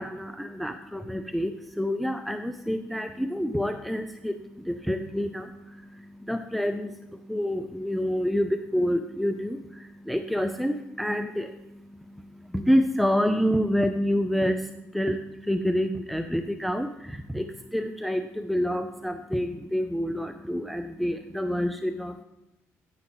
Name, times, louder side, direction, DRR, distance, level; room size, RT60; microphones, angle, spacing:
voice 1, 0.0-22.2, equal, ahead, 7 dB, 0.5 m, -28 dB
9.8 x 9.7 x 3.1 m, 0.93 s
cardioid pair, 80°, 6 cm